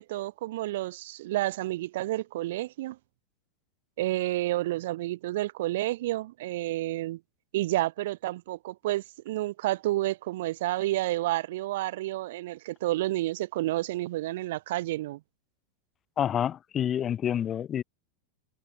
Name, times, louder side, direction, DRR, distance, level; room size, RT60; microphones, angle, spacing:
voice 1, 0.0-3.0 4.0-7.2 7.5-15.2, right 16 dB, 55° right, 0.4 m, -30 dB
voice 2, 16.2-17.8, left 9 dB, 25° left, 0.6 m, -28 dB
figure-of-eight pair, 90°, 0 cm